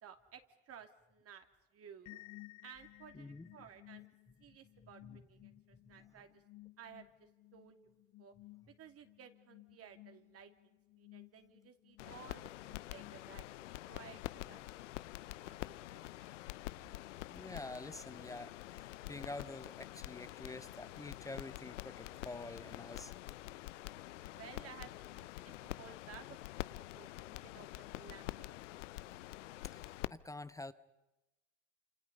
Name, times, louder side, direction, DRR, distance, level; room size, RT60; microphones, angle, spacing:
voice 1, 0.0-1.5 1.7-2.2 2.6-4.1 4.4-6.4 6.8-7.8 8.2-8.3 8.7-15.1 15.4-16.3 24.3-26.4 26.9-28.6, right 7 dB, 40° right, 6 dB, 2.9 m, -56 dB
sound 1, 2.1-13.7, left 19 dB, 50° left, 0.8 m, -58 dB
voice 2, 3.1-3.5 5.0-5.3 6.0-6.1 17.3-23.2 29.7-30.7, left 2 dB, 10° left, 14 dB, 1.0 m, -48 dB
sound 2, 12.0-30.1, left 16 dB, 75° left, 0.8 m, -47 dB
29.5 x 28.0 x 5.5 m, 1.0 s
hypercardioid pair, 85°, 36 cm